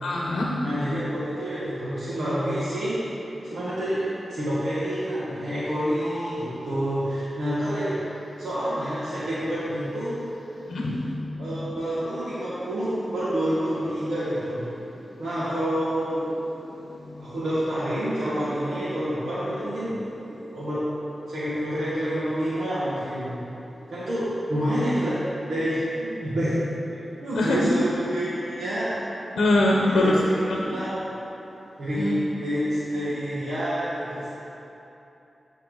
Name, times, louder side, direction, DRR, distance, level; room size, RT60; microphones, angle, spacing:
voice 1, 0.0-0.5 6.1-6.3 10.7-10.8 27.3-27.6 29.4-30.1 30.5-30.6 32.0-32.1, left 2 dB, 90° left, -2 dB, 0.8 m, -22 dB
voice 2, 0.6-3.0 3.4-8.0 8.4-10.2 11.4-14.7 15.2-16.3 17.2-20.0 20.5-20.9 21.3-23.4 23.9-26.6 27.2-28.3 28.6-28.9 29.8-30.9 31.8-34.2, equal, 85° right, -11 dB, 1.7 m, -28 dB
12.0 x 4.3 x 3.9 m, 2.9 s
cardioid pair, 65°, 0 cm